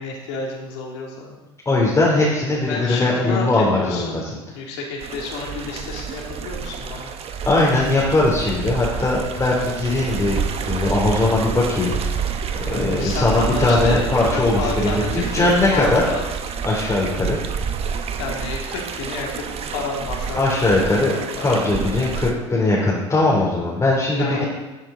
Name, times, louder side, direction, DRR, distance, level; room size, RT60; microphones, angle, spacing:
voice 1, 0.0-1.3 2.7-4.3 4.5-7.1 12.7-16.2 18.2-22.0 24.2-24.4, left 3 dB, 70° left, -1 dB, 2.7 m, -30 dB
voice 2, 1.6-4.3 7.4-12.2 12.6-15.0 15.3-16.0 16.6-17.4 20.4-24.4, left 2 dB, 20° left, -5 dB, 3.4 m, -20 dB
sound 1, 5.0-22.3, right 6 dB, 45° right, 1.0 m, -28 dB
13.5 x 7.2 x 3.9 m, 1.1 s
hypercardioid pair, 70°, 14 cm